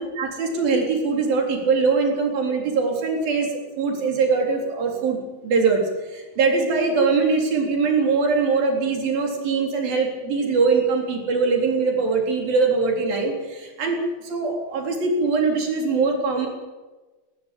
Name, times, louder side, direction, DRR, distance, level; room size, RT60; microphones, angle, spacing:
voice 1, 0.0-16.5, right 4 dB, 75° right, 2 dB, 5.7 m, -22 dB
19.5 x 18.5 x 8.6 m, 1.2 s
omnidirectional pair, 4.2 m